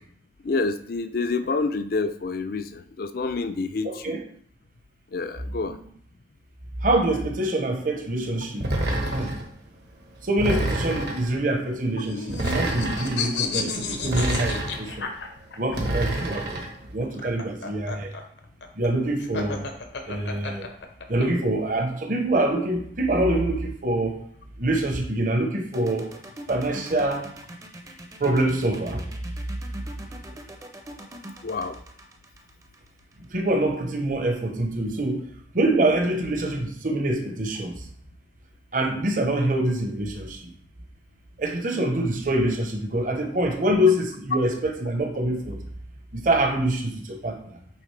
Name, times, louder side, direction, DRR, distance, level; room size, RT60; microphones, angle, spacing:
voice 1, 0.4-4.1 5.1-5.8 31.4-31.8 44.3-44.4, left 3 dB, 50° left, 10 dB, 0.4 m, -28 dB
voice 2, 3.8-4.2 5.6-5.8 6.8-8.7 9.1-9.3 10.2-15.1 15.6-16.6 16.9-18.1 18.7-19.7 20.0-20.7 21.1-24.2 24.6-26.1 26.5-27.3 28.2-29.1 33.3-35.3 35.5-37.8 38.7-40.5 41.4-45.6 46.1-47.4, right 1 dB, 45° right, 3 dB, 0.9 m, -25 dB
sound 1, 8.6-9.5 10.4-11.3 12.3-13.2 14.0-14.9 15.7-16.7, right 1 dB, 60° right, 1.1 m, -27 dB
sound 2, 11.7-15.8 17.0-21.3, left 5 dB, 70° left, 0.8 m, -32 dB
sound 3, 25.7-33.5, right 1 dB, 20° right, 0.6 m, -42 dB
8.7 x 3.6 x 3.3 m, 0.62 s
head